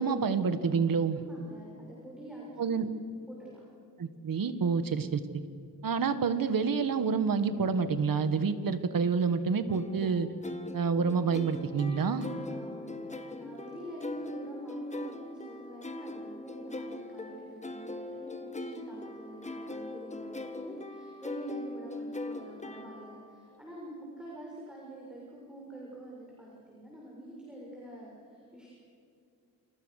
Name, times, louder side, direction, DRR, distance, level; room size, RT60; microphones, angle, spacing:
voice 1, 0.0-1.2 2.6-2.8 4.0-5.4 5.8-10.3 10.7-12.2, right 5 dB, 75° right, 11 dB, 1.7 m, -28 dB
voice 2, 1.2-2.8 3.3-3.6 4.6-4.7 12.1-28.7, right 1 dB, 5° right, -5 dB, 6.7 m, -47 dB
sound 1, 9.7-23.3, left 2 dB, 20° left, 1.7 m, -41 dB
29.0 x 28.0 x 6.6 m, 2.4 s
wide cardioid pair, 120°, 34 cm